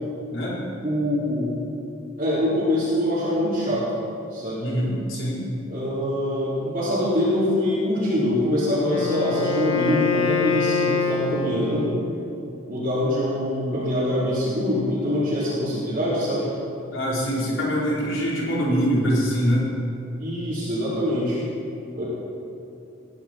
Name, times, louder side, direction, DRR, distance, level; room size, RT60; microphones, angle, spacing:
voice 1, 0.8-1.5 2.2-3.9 4.3-4.6 5.7-11.9 12.7-16.5 20.2-21.4 21.9-22.0, left 1 dB, 40° right, -11 dB, 4.1 m, -24 dB
voice 2, 4.6-5.5 16.9-19.6, equal, 70° left, -6 dB, 4.2 m, -23 dB
Wind instrument woodwind instrument, 8.8-12.1, left 5 dB, 90° left, 1.3 m, -25 dB
19.0 x 11.0 x 4.5 m, 2.8 s
head